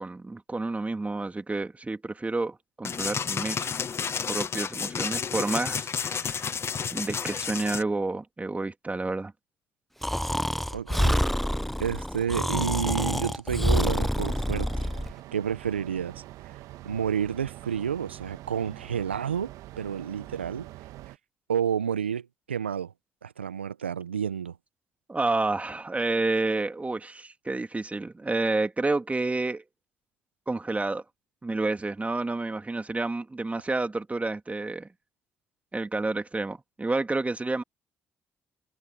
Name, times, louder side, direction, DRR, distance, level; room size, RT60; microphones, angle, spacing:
voice 1, 0.0-3.7 4.3-6.5 6.9-9.3 25.1-29.6 30.5-31.0 31.4-34.9 35.7-37.6, right 3 dB, 25° right, 2.9 m, -29 dB
sound 1, 2.8-7.8, left 6 dB, 45° left, 1.7 m, -31 dB
Breathing, 10.0-15.1, equal, ahead, 0.7 m, -27 dB
voice 2, 10.7-11.2 11.8-14.9 15.3-16.2 16.8-20.7 21.5-22.9 23.2-24.6, right 8 dB, 90° right, 1.1 m, -30 dB
sound 2, 14.3-21.2, right 16 dB, 70° right, 1.5 m, -45 dB
figure-of-eight pair, 40°, 6 cm